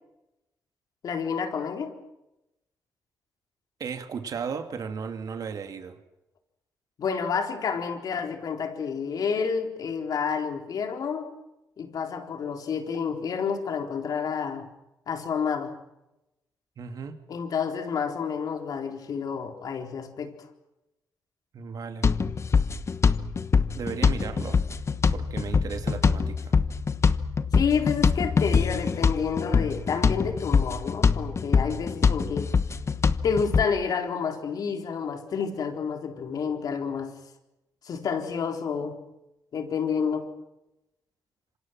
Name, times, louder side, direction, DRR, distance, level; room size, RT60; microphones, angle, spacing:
voice 1, 1.0-1.9 7.0-11.3 11.8-14.7 15.1-15.7 17.3-20.3 27.5-32.5 33.2-37.1 37.8-39.0 39.5-40.3, left 6 dB, 70° left, 4.0 m, -29 dB
voice 2, 3.8-6.0 16.8-17.1 21.5-22.1 23.7-24.6 25.1-26.5, right 6 dB, 65° right, 2.8 m, -35 dB
sound 1, 22.0-33.6, left 5 dB, 45° left, 1.1 m, -24 dB
27.0 x 25.5 x 6.1 m
cardioid pair, 80°, 7 cm